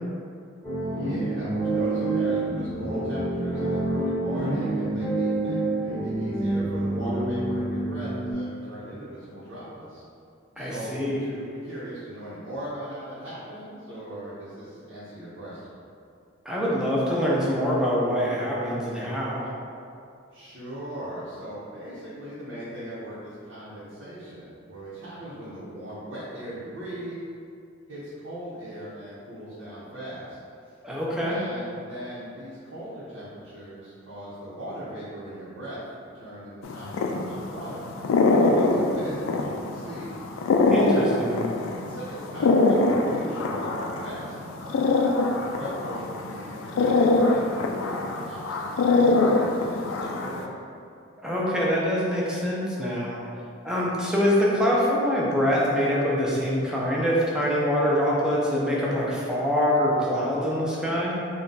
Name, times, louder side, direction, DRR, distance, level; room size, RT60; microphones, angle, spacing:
sound 1, 0.6-8.3, right 2 dB, 10° left, 0.9 m, -27 dB
voice 1, 0.8-10.0 10.6-15.8 20.3-27.2 27.9-30.4 30.6-30.8 31.2-35.8 36.1-37.8 38.2-40.2 40.7-44.9 45.4-50.5, right 1 dB, 80° right, -11 dB, 0.9 m, -39 dB
voice 2, 10.6-11.2 16.5-19.4 30.8-31.4 40.7-41.4 51.2-53.2 53.6-61.2, equal, 5° right, -6 dB, 0.5 m, -24 dB
sound 2, 36.6-50.5, left 3 dB, 90° left, 0.3 m, -23 dB
3.7 x 2.2 x 3.9 m, 2.4 s
head